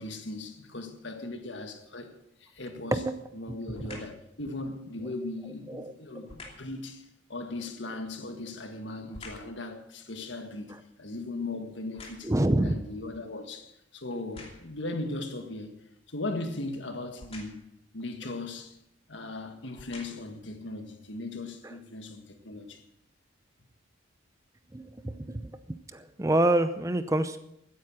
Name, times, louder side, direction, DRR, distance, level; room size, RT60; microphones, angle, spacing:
voice 1, 0.0-2.1 2.4-3.0 3.3-12.3 12.6-15.8 16.1-17.6 17.9-18.8 19.1-22.8, left 2 dB, 60° left, 1.8 m, -38 dB
sound 1, 2.6-3.0 3.7-4.2 6.2-6.8 8.2-9.6 10.1-12.6 13.2-13.3 14.1-14.8 17.2-17.8 18.8-18.9 19.6-20.4 21.0-21.1, left 2 dB, 30° left, 2.8 m, -49 dB
voice 2, 12.2-12.8 24.7-25.5 25.9-27.4, right 1 dB, 15° right, 0.6 m, -26 dB
16.0 x 9.5 x 6.3 m
head